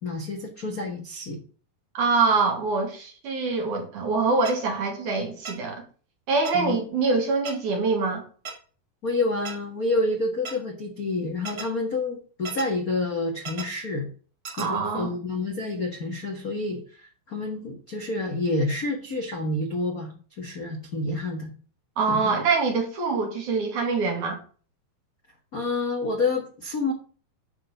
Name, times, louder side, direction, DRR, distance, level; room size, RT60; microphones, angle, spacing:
voice 1, 0.0-1.4 6.5-6.8 9.0-14.1 14.6-21.5 22.1-22.2 25.5-26.9, left 2 dB, 50° left, 1 dB, 1.1 m, -28 dB
voice 2, 2.0-5.8 6.3-8.2 14.6-15.1 22.0-24.4, right 4 dB, 55° right, 2 dB, 3.6 m, -24 dB
sound 1, 4.5-4.6 5.5-5.6 6.5-6.6 7.5-7.6 8.5-8.6 9.5-9.6 10.5-10.6 11.5-11.7 12.5-12.7 13.5-13.7 14.5-14.7, right 4 dB, 35° right, 1.6 m, -34 dB
11.0 x 4.7 x 6.6 m, 0.40 s
omnidirectional pair, 4.3 m